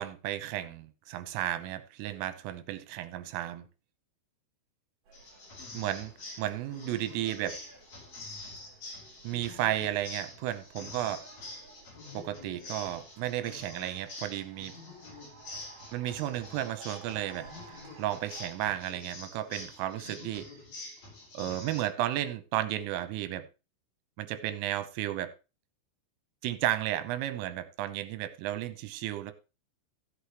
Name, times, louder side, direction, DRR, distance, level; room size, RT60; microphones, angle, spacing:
voice 1, 0.0-3.7 5.7-6.1 6.4-7.6 9.2-11.2 12.1-14.8 15.9-17.5 18.0-20.5 21.3-23.5 24.2-25.3 26.4-29.3, right 13 dB, 90° right, 3.4 m, -33 dB
sound 1, 5.1-21.8, left 2 dB, 35° left, 5.2 m, -46 dB
sound 2, 5.1-18.5, right 4 dB, 40° right, 4.7 m, -55 dB
15.0 x 8.3 x 3.1 m
omnidirectional pair, 5.9 m